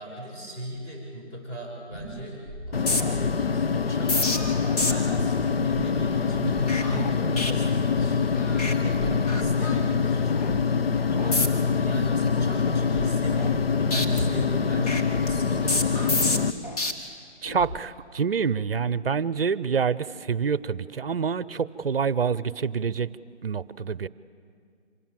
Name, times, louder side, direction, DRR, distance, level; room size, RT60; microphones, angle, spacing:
voice 1, 0.0-4.3 4.8-8.4 8.8-10.4 11.1-11.4 11.8-16.7, right 1 dB, 20° left, -4 dB, 7.0 m, -38 dB
sound 1, 1.9-2.2 2.5-8.2 8.5-8.7 9.0-10.0 10.4-10.6 11.2-11.7 12.1-13.6 13.9-16.9 17.5-17.8, left 2 dB, 35° left, 1.8 m, -31 dB
sound 2, 2.7-16.5, left 5 dB, 55° left, 0.7 m, -25 dB
Singing, 3.2-6.3 6.7-9.2 9.6-12.2, left 2 dB, 90° left, 7.5 m, -47 dB
voice 2, 17.4-23.1 23.4-24.1, right 6 dB, 55° right, 18 dB, 0.7 m, -27 dB
26.0 x 17.5 x 7.6 m, 2.2 s
figure-of-eight pair, 165°, 35 cm